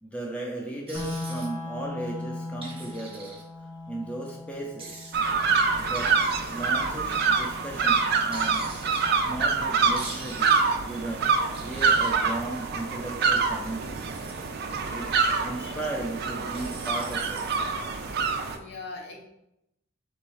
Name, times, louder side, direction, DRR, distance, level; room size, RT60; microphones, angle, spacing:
voice 1, 0.0-3.4 3.9-5.1 5.8-8.7 9.2-14.1 14.5-14.6 14.9-17.4, right 2 dB, 5° left, -2 dB, 0.6 m, -36 dB
sound 1, 0.9-10.9, left 2 dB, 85° left, 1.3 m, -40 dB
sound 2, 0.9-1.5 2.6-3.4 4.8-5.2 5.9-6.6 8.3-9.0 10.0-10.6 11.5-12.2 13.7-14.5 16.5-17.6, right 3 dB, 30° right, 1.0 m, -43 dB
sound 3, 5.1-18.6, right 5 dB, 50° right, 0.4 m, -26 dB
voice 2, 18.4-19.2, left 3 dB, 55° left, 1 dB, 0.9 m, -43 dB
3.5 x 3.1 x 4.7 m, 0.84 s
head